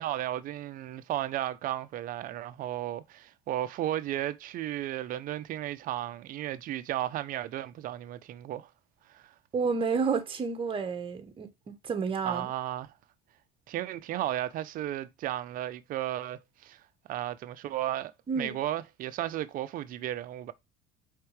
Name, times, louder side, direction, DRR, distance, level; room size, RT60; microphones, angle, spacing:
voice 1, 0.0-8.7 9.1-9.3 12.2-12.9 13.7-16.8 17.1-20.5, right 13 dB, 55° right, 0.6 m, -34 dB
voice 2, 9.5-12.5 18.3-18.6, right 5 dB, 30° right, 1.3 m, -30 dB
4.5 x 3.7 x 3.2 m
supercardioid pair, 100°, 17 cm